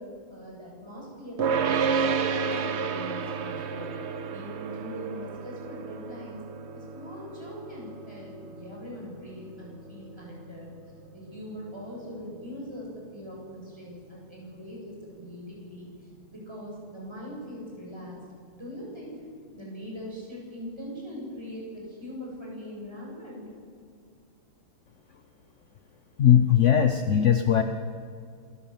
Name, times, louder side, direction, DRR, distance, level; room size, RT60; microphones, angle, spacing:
voice 1, 0.0-3.9 4.3-6.4 6.7-10.7 11.1-15.9 16.3-18.2 18.5-19.1 19.5-23.5, equal, 10° right, -4 dB, 7.6 m, -41 dB
sound 1, 1.4-12.7, right 6 dB, 55° right, 0.7 m, -32 dB
voice 2, 26.2-27.6, left 9 dB, 60° left, 8 dB, 0.8 m, -19 dB
26.5 x 14.5 x 7.3 m, 2.2 s
omnidirectional pair, 2.3 m